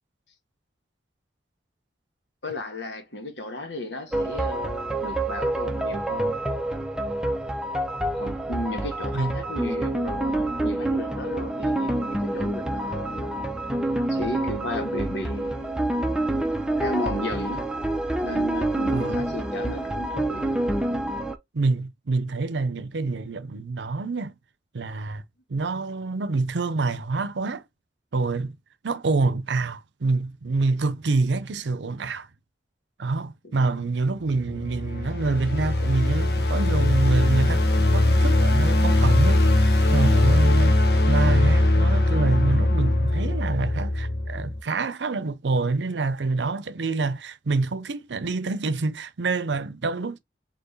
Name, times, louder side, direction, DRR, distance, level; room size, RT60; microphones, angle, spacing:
voice 1, 2.4-6.4 8.1-13.5 14.1-15.8 16.8-17.7 18.2-20.7 33.4-33.7, left 1 dB, 85° left, 1.5 m, -34 dB
sound 1, 4.1-21.4, right 1 dB, 5° right, 0.5 m, -27 dB
voice 2, 9.1-9.4 18.9-19.3 21.5-24.3 24.7-25.2 25.5-27.6 28.1-28.6 28.8-32.3 33.0-40.8 41.1-50.2, right 3 dB, 85° right, 0.6 m, -26 dB
sound 2, 34.4-44.6, left 1 dB, 60° left, 0.9 m, -20 dB
4.6 x 2.9 x 3.1 m
head